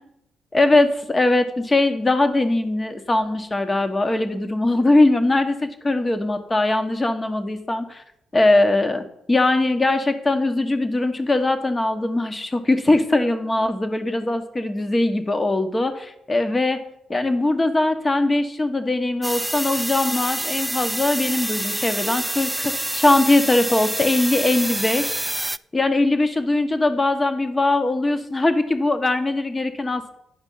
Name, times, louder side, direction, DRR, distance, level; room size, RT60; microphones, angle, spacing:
voice 1, 0.5-8.0 8.3-16.8 17.1-25.2 25.7-30.2, left 2 dB, 30° left, 8 dB, 1.1 m, -21 dB
sound 1, 19.2-25.6, right 1 dB, 5° right, 0.3 m, -27 dB
9.7 x 5.4 x 5.5 m, 0.78 s
hypercardioid pair, 45°, 0 cm